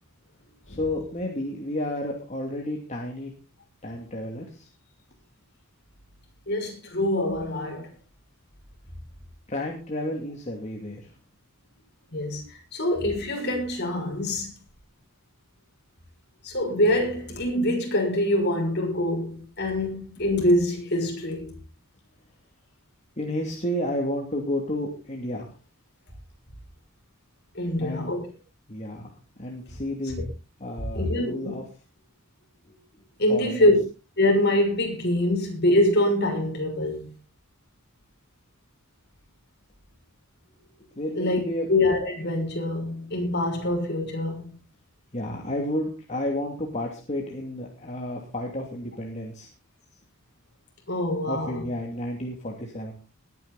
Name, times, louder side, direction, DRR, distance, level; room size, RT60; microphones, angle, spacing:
voice 1, 0.7-3.3 3.8-4.7 9.5-11.1 23.2-25.5 27.8-28.1 28.7-30.2 30.6-31.6 32.6-32.8 33.3-33.7 40.8-41.7 45.1-49.5 51.3-52.9, left 1 dB, 35° left, 2.7 m, -31 dB
voice 2, 6.5-7.9 12.1-14.5 16.4-21.6 27.5-28.2 29.7-29.8 30.2-30.3 30.9-31.6 33.2-33.8 34.2-37.1 41.1-41.4 41.7-44.6 50.9-51.7, left 1 dB, 50° left, 6.4 m, -24 dB
20.5 x 9.8 x 4.1 m
head